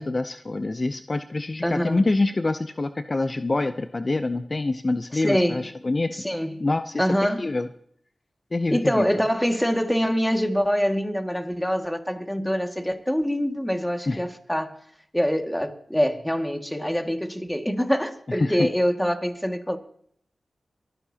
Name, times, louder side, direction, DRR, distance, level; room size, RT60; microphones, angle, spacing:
voice 1, 0.0-6.1 6.6-7.7 8.5-9.1 14.1-14.2 18.4-18.7, left 2 dB, 40° left, 0.6 m, -26 dB
voice 2, 1.6-2.1 5.1-5.7 6.1-6.7 7.0-7.5 8.7-14.7 15.1-19.8, equal, 5° left, 2.0 m, -25 dB
23.5 x 14.5 x 2.9 m
cardioid pair, 55°, 0 cm